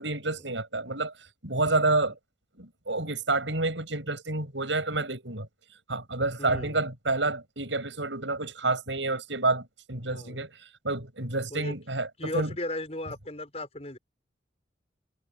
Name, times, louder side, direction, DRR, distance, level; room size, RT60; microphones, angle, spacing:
voice 1, 0.0-2.1 2.6-5.5 5.9-12.5, right 2 dB, 85° right, 7.8 m, -29 dB
voice 2, 6.4-6.8 10.1-10.4 11.5-11.7 12.2-14.0, left 1 dB, 35° left, 6.3 m, -36 dB
head